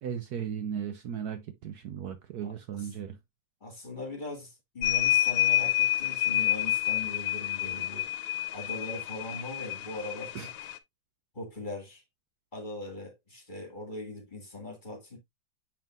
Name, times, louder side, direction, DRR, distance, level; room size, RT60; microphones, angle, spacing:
voice 1, 0.0-3.2 10.3-10.5, right 8 dB, 65° right, 1.2 m, -36 dB
voice 2, 2.4-2.9 3.6-8.1 8.5-10.7 11.3-12.0 12.5-15.2, left 2 dB, 25° left, 2.1 m, -40 dB
sound 1, 4.8-10.8, left 14 dB, 90° left, 1.5 m, -28 dB
7.3 x 5.6 x 2.4 m
omnidirectional pair, 2.0 m